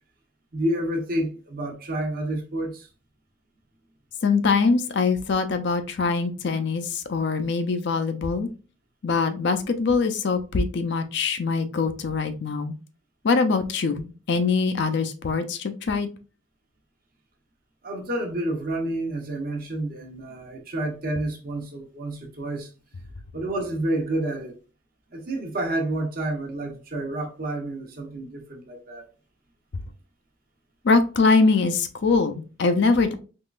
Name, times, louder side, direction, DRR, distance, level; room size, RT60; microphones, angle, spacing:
voice 1, 0.5-2.9 17.8-22.7 23.3-24.6 25.1-29.1, right 1 dB, 45° right, 0.9 m, -29 dB
voice 2, 4.2-8.5 9.0-12.7 13.2-16.1 30.8-33.1, left 4 dB, 55° left, 0.5 m, -23 dB
3.6 x 3.0 x 2.4 m
head